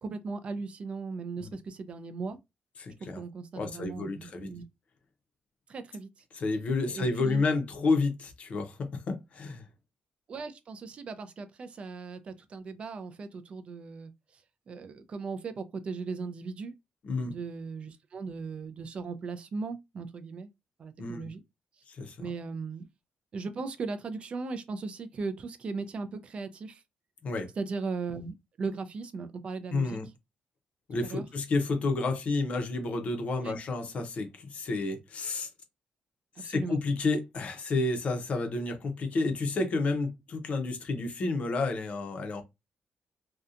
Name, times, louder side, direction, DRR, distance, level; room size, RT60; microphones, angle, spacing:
voice 1, 0.0-2.4 3.0-4.6 5.7-6.1 6.9-7.4 10.3-14.1 14.7-16.7 17.2-20.5 20.8-21.4 22.2-22.9 23.3-26.8 27.6-30.0 31.0-31.2 33.4-33.6 36.4-36.8, right 4 dB, 40° right, 0.3 m, -37 dB
voice 2, 2.8-3.2 3.6-4.5 6.3-9.6 17.0-17.4 21.0-21.3 21.9-22.3 27.2-27.5 29.7-30.1 30.9-35.5 36.4-42.4, left 3 dB, 45° left, 0.6 m, -30 dB
2.7 x 2.1 x 2.4 m
wide cardioid pair, 165°, 3 cm